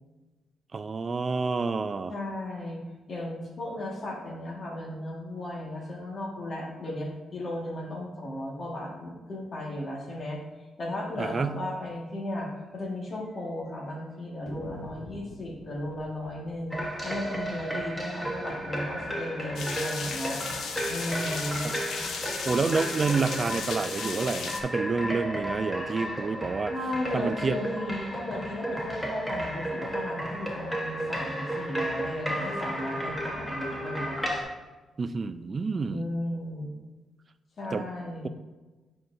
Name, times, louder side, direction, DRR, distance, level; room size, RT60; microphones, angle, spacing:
voice 1, 0.7-2.1 11.2-11.6 21.6-21.7 22.4-26.7 27.1-27.6 35.0-36.1 37.7-37.9, right 4 dB, 40° right, 12 dB, 0.4 m, -29 dB
voice 2, 2.1-2.8 3.1-10.4 10.8-20.4 20.9-21.7 26.6-34.2 35.9-36.7 37.6-38.3, left 1 dB, 45° left, -2 dB, 1.7 m, -35 dB
sound 1, 11.6-11.8 12.1-12.2 12.5-12.6 13.2-13.7 14.5-19.2, left 1 dB, 25° left, 0.7 m, -49 dB
sound 2, 16.7-34.4, right 1 dB, 5° left, 1.1 m, -33 dB
sound 3, 19.6-24.6, left 5 dB, 75° left, 0.7 m, -36 dB
9.3 x 4.4 x 2.7 m, 1.2 s
cardioid pair, 90°, 0 cm